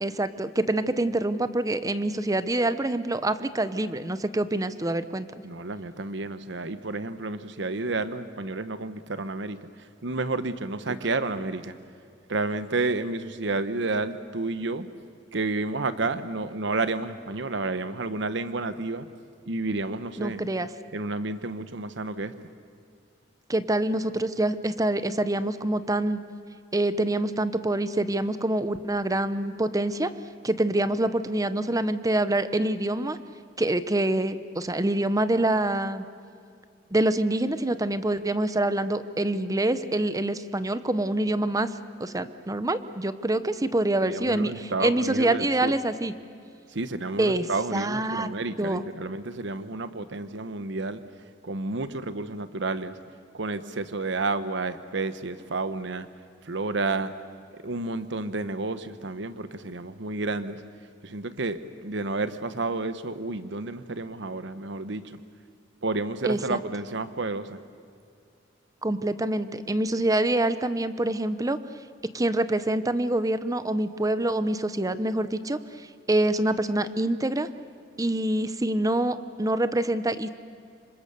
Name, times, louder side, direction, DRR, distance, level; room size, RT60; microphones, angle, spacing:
voice 1, 0.0-5.3 10.9-11.0 20.2-20.7 23.5-26.2 26.7-30.1 30.4-33.2 33.6-36.0 36.9-41.7 42.0-46.1 47.2-47.4 47.7-48.3 48.6-48.8 66.2-66.6 68.8-71.6 72.1-75.6 76.1-77.5 78.0-80.3, right 1 dB, 20° right, 12 dB, 0.9 m, -26 dB
voice 2, 5.4-11.7 12.3-14.9 15.3-19.1 19.5-20.4 20.9-22.3 44.0-45.7 46.7-51.0 51.4-53.0 53.3-56.1 56.4-57.1 57.5-60.6 61.0-65.2 65.8-67.6, right 3 dB, 70° right, 12 dB, 1.0 m, -30 dB
27.0 x 25.0 x 6.9 m, 2.4 s
head